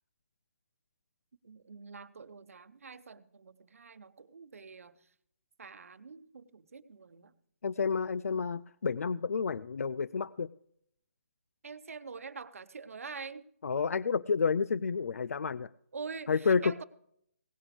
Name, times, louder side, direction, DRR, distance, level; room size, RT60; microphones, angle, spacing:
voice 1, 1.4-5.1 5.6-7.3 11.6-13.4 15.9-16.8, right 5 dB, 70° right, 12 dB, 0.9 m, -45 dB
voice 2, 7.6-10.5 13.6-15.7 16.3-16.7, left 5 dB, 80° left, 19 dB, 0.4 m, -30 dB
18.0 x 10.0 x 3.3 m, 0.71 s
hypercardioid pair, 170°, 8 cm